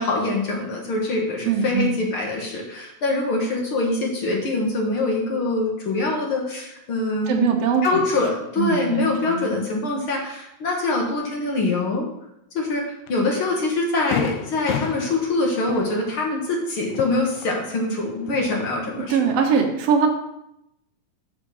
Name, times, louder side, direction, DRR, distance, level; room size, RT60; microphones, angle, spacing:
voice 1, 0.0-7.5 7.8-12.1 12.5-19.3, left 2 dB, 50° left, 0 dB, 1.9 m, -24 dB
voice 2, 1.4-2.0 7.3-8.0 8.6-9.4 19.1-20.1, right 6 dB, 60° right, 2 dB, 2.1 m, -21 dB
Fireworks, 13.1-13.2 13.6-13.7 14.1-17.9 18.2-19.1, left 9 dB, 80° left, 1.5 m, -32 dB
6.7 x 6.3 x 6.9 m, 0.83 s
omnidirectional pair, 3.6 m